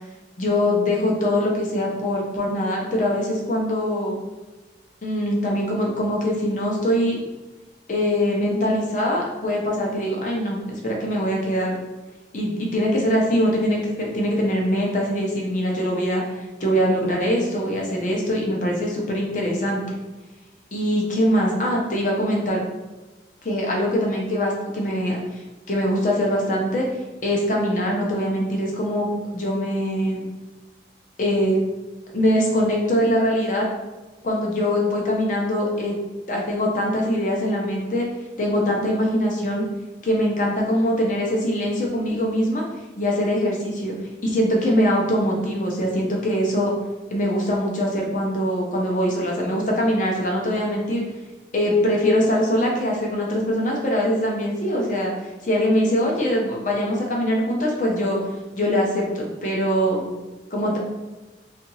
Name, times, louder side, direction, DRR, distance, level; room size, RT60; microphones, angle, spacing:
voice 1, 0.4-3.2 3.5-4.2 5.0-7.2 7.9-11.8 12.3-16.2 16.6-19.8 20.7-22.6 23.4-25.4 25.7-26.9 27.2-30.3 31.2-31.6 32.1-33.7 34.2-36.0 36.3-38.1 38.4-39.6 40.0-42.6 43.0-43.9 44.2-46.7 47.1-51.0 51.5-55.1 55.4-58.2 58.5-60.0 60.5-60.8, equal, 45° left, -2 dB, 0.7 m, -22 dB
2.8 x 2.6 x 3.9 m, 1.2 s
head